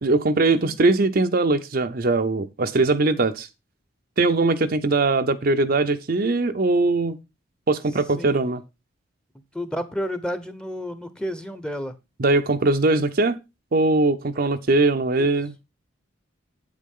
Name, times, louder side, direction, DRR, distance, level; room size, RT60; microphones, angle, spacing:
voice 1, 0.0-3.5 4.2-7.2 7.7-8.6 12.2-13.4 13.7-15.5, right 3 dB, 45° right, 0.6 m, -21 dB
voice 2, 9.5-11.9 14.4-14.6 15.2-15.3, equal, 5° left, 0.8 m, -31 dB
8.6 x 8.4 x 3.7 m
head